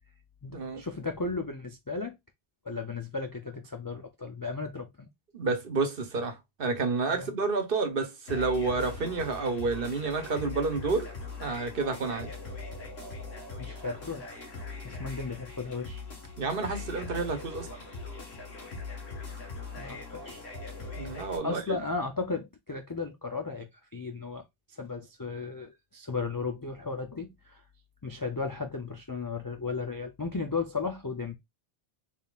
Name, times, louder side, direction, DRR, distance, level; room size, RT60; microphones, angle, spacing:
voice 1, 0.4-2.2 2.6-5.1 7.1-7.3 13.6-14.3 14.8-16.0 19.8-20.4 21.4-24.4 24.7-27.6 28.0-31.4, left 4 dB, 35° left, 0.3 m, -35 dB
voice 2, 5.3-11.1 11.4-12.3 16.4-17.7 21.0-21.6, right 3 dB, 60° right, 1.1 m, -30 dB
sound 1, 8.3-21.4, left 3 dB, 75° left, 1.7 m, -41 dB
4.0 x 3.6 x 2.3 m
omnidirectional pair, 1.1 m